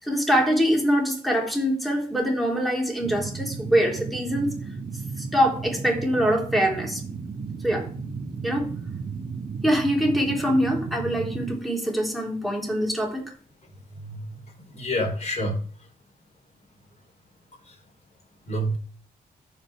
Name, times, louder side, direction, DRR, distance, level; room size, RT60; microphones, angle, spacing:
voice 1, 0.0-4.5 5.2-7.0 7.6-7.9 8.4-8.7 9.6-13.3, equal, ahead, 0 dB, 3.5 m, -24 dB
sound 1, 3.0-11.6, right 5 dB, 60° right, 1.5 m, -34 dB
voice 2, 14.7-15.6 18.5-18.8, equal, 45° left, 1 dB, 3.8 m, -27 dB
14.5 x 5.4 x 3.5 m, 0.43 s
cardioid pair, 85°, 16 cm